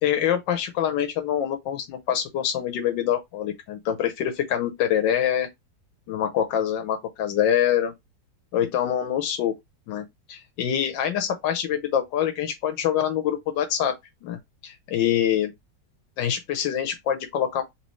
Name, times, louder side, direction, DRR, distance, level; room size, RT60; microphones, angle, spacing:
voice 1, 0.0-5.5 6.1-7.9 8.5-9.5 9.9-13.9 14.2-14.4 14.6-15.5 16.2-17.6, left 10 dB, 80° left, 1.4 m, -25 dB
4.1 x 3.0 x 3.0 m
omnidirectional pair, 2.0 m